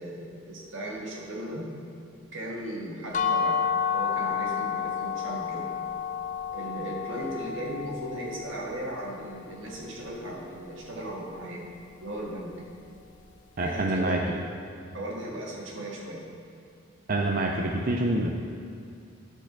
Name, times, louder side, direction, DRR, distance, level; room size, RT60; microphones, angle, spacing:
voice 1, 0.0-1.7 2.3-3.7 3.9-5.7 6.5-11.7 12.0-12.6 13.6-14.5 14.9-16.3, right 1 dB, 75° right, -3 dB, 1.8 m, -37 dB
sound 1, 3.1-9.0, left 7 dB, 40° left, 0.5 m, -30 dB
voice 2, 13.6-14.2 17.1-18.3, right 2 dB, 45° right, 1 dB, 0.5 m, -26 dB
10.5 x 4.4 x 5.9 m, 2.4 s
head